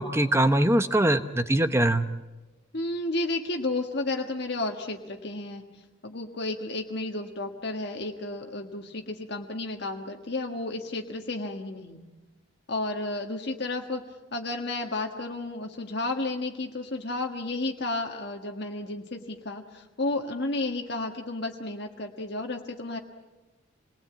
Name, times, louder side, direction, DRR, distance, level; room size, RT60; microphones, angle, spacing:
voice 1, 0.0-2.0, right 1 dB, 15° right, 10 dB, 0.8 m, -22 dB
voice 2, 2.7-5.6 6.0-12.0 12.7-14.0 14.3-23.0, left 2 dB, 50° left, 3 dB, 1.5 m, -32 dB
27.0 x 19.5 x 8.6 m, 1.1 s
head